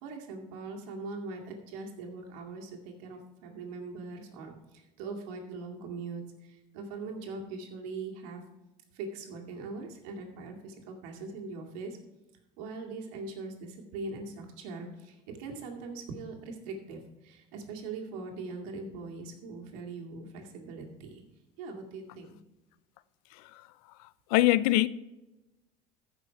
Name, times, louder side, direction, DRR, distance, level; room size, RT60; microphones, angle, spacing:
voice 1, 0.0-8.4 8.9-12.0 12.6-21.2 21.6-22.4, right 3 dB, 85° right, 2.2 m, -41 dB
voice 2, 23.3-23.7 24.0-24.9, left 16 dB, 85° left, 0.5 m, -25 dB
15.0 x 6.2 x 4.5 m
supercardioid pair, 105°, 18 cm